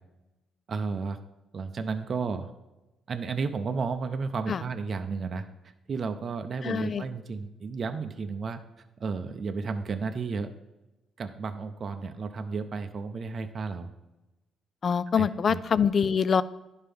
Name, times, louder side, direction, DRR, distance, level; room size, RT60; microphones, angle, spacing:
voice 1, 0.7-1.2 1.5-2.5 3.1-5.5 5.9-8.6 9.0-10.5 11.2-13.9 15.2-15.6, right 4 dB, 45° right, 7 dB, 0.5 m, -32 dB
voice 2, 6.6-7.1 14.8-16.4, left 7 dB, 45° left, 17 dB, 0.3 m, -25 dB
11.0 x 4.4 x 3.5 m, 1.0 s
cardioid pair, 90°, 0 cm